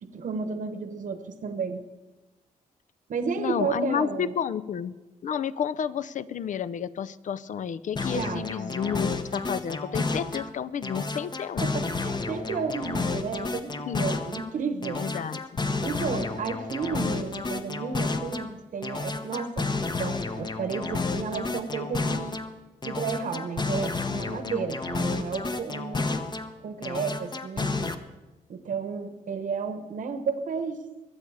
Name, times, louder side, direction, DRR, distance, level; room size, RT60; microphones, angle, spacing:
voice 1, 0.0-1.8 3.1-4.3 8.1-8.4 11.6-15.0 15.8-19.7 20.0-22.4 22.8-26.1 26.6-27.9 28.5-30.8, right 5 dB, 60° right, 8 dB, 1.0 m, -32 dB
voice 2, 3.4-4.9 5.2-11.7 13.9-14.1 14.9-15.6, left 8 dB, 60° left, 16 dB, 0.6 m, -31 dB
sound 1, 8.0-10.5 10.8-14.5 14.8-18.5 18.8-22.5 22.8-26.5 26.8-27.9, left 3 dB, 30° left, 0.9 m, -31 dB
22.5 x 8.1 x 4.8 m, 1.1 s
cardioid pair, 90°, 15 cm